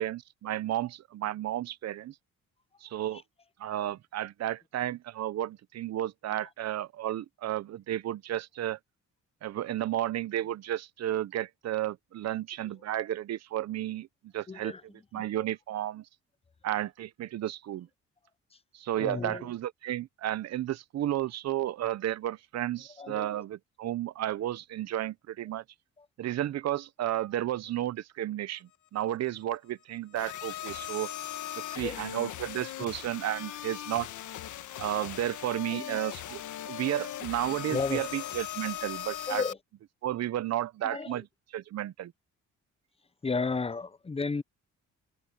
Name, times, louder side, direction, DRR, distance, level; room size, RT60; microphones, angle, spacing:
voice 1, 0.0-2.1 2.8-3.2 3.6-8.8 9.4-14.1 14.3-14.7 15.1-16.1 16.6-17.9 18.7-25.6 26.2-31.1 31.6-34.1 34.8-39.4 40.0-41.3 41.5-42.1, right 13 dB, 60° right, 0.8 m, -32 dB
voice 2, 14.5-14.8 15.1-15.3 19.0-19.5 23.0-23.4 26.0-26.1 31.7-32.0 35.7-36.0 37.7-38.0 39.3-39.6 40.8-41.2 43.2-44.4, left 4 dB, 20° left, 0.8 m, -33 dB
sound 1, 30.2-39.5, left 12 dB, 75° left, 1.6 m, -39 dB
open air
cardioid pair, 90°, 30 cm